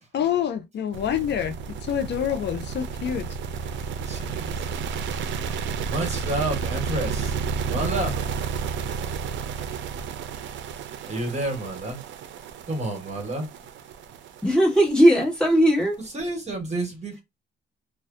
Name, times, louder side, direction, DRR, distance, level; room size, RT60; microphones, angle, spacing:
voice 1, 0.1-3.3, left 9 dB, 60° left, 0.5 m, -27 dB
sound 1, 0.9-16.1, right 6 dB, 70° right, 0.5 m, -31 dB
voice 2, 4.0-4.7 5.9-7.4 7.7-8.1 11.1-12.0 12.7-13.5 16.0-17.2, right 2 dB, 35° right, 1.3 m, -30 dB
voice 3, 14.4-16.0, equal, 5° left, 1.4 m, -18 dB
2.5 x 2.2 x 2.3 m
cardioid pair, 90°, 20 cm